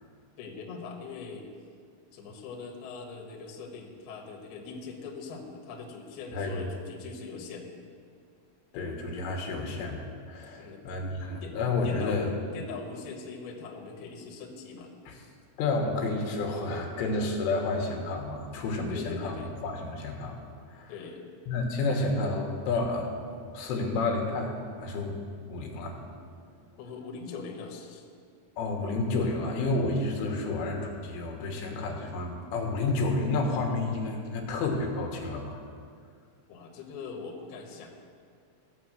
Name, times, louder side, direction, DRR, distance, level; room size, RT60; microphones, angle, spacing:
voice 1, 0.4-1.5 2.1-7.7 10.6-10.8 11.4-11.6 11.8-12.2 12.5-15.4 18.9-19.5 20.9-21.2 26.8-28.0 36.5-37.9, left 4 dB, 65° left, 1 dB, 3.0 m, -41 dB
voice 2, 6.3-6.7 8.7-12.3 15.1-15.2 15.6-20.3 20.7-20.9 21.5-23.1 23.4-25.2 25.5-26.0 28.6-35.6, left 3 dB, 85° left, 2 dB, 3.8 m, -30 dB
16.0 x 6.8 x 8.0 m, 2.2 s
omnidirectional pair, 5.7 m